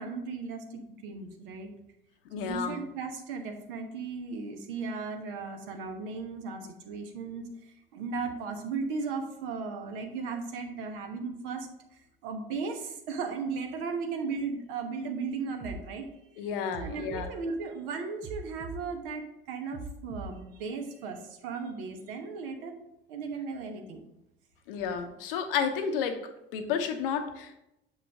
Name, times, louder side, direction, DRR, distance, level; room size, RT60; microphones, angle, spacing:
voice 1, 0.0-1.7 2.4-7.5 7.9-11.7 12.2-16.1 16.8-22.7 23.1-24.0, right 4 dB, 65° right, 4 dB, 1.1 m, -36 dB
voice 2, 2.3-2.7 16.4-17.3 24.7-27.5, left 7 dB, 65° left, 7 dB, 0.8 m, -31 dB
sound 1, 15.6-15.8 16.7-17.3 18.2-18.8 19.7-20.3, right 3 dB, 35° right, 0.8 m, -40 dB
6.6 x 5.4 x 3.5 m, 0.84 s
figure-of-eight pair, 60°, 30 cm